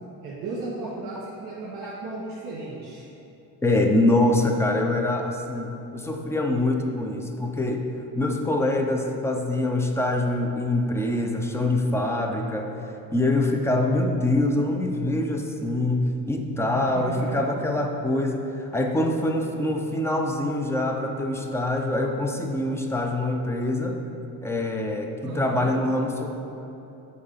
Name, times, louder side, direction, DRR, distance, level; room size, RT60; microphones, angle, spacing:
voice 1, 0.2-3.0 16.9-17.5 25.2-25.7, right 3 dB, 60° right, -7 dB, 1.8 m, -35 dB
voice 2, 3.6-7.9 8.2-12.7 13.1-24.0 24.4-26.3, left 1 dB, 5° left, 3 dB, 0.5 m, -24 dB
8.7 x 3.8 x 5.7 m, 3.0 s
cardioid pair, 145°, 38 cm